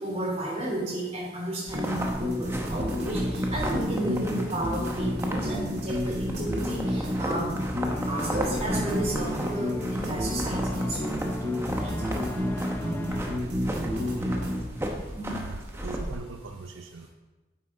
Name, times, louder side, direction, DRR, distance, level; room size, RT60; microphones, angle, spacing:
voice 1, 0.0-7.5 8.1-11.0 11.7-11.9 15.1-15.4, right 1 dB, 30° right, -5 dB, 3.4 m, -32 dB
sound 1, 1.7-16.2, right 1 dB, 15° right, 0.9 m, -36 dB
sound 2, 1.7-14.7, equal, 60° right, 2.1 m, -30 dB
sound 3, 7.6-13.4, left 1 dB, 10° left, 0.3 m, -39 dB
voice 2, 13.1-13.5 13.8-14.6 15.3-17.1, right 4 dB, 85° right, 6 dB, 0.6 m, -41 dB
9.3 x 8.5 x 3.8 m, 1.2 s
head